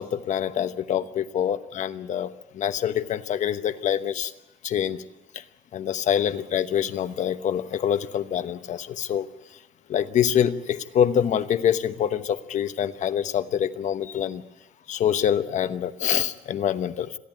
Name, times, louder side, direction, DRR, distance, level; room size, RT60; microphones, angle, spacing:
voice 1, 0.0-4.3 4.6-5.0 5.3-5.4 5.7-9.6 9.9-14.4 14.9-17.2, left 9 dB, 70° left, 10 dB, 1.0 m, -25 dB
28.0 x 11.0 x 9.4 m, 0.96 s
wide cardioid pair, 170°, 13 cm